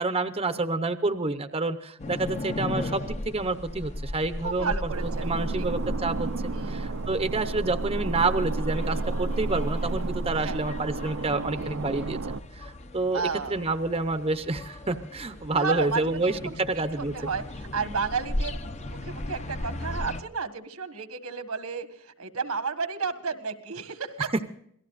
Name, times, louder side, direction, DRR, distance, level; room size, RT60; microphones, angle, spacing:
voice 1, 0.0-4.7 5.2-13.2 13.5-17.3, right 3 dB, 25° right, 9 dB, 0.7 m, -28 dB
sound 1, 2.0-20.2, left 1 dB, 30° left, 0.8 m, -38 dB
voice 2, 4.4-5.3 5.6-5.7 6.5-6.9 10.4-10.6 13.1-13.6 15.5-16.6 17.0-18.6 18.8-24.3, right 5 dB, 85° right, 9 dB, 1.6 m, -32 dB
sound 2, 4.9-12.4, right 2 dB, 65° right, 0.6 m, -31 dB
27.0 x 18.5 x 2.5 m, 0.67 s
head